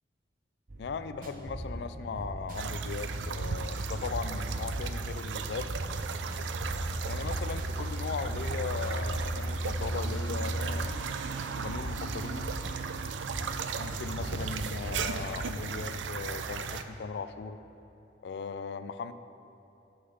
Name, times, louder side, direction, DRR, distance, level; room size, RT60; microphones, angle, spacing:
sound 1, 0.7-15.9, right 1 dB, 50° right, 0.8 m, -38 dB
voice 1, 0.8-5.7 7.1-11.0 11.6-12.5 13.8-17.6 18.2-19.1, left 5 dB, 65° left, 11 dB, 0.3 m, -38 dB
sound 2, 2.5-16.8, right 5 dB, 80° right, 0.4 m, -36 dB
6.6 x 5.6 x 5.6 m, 2.9 s
head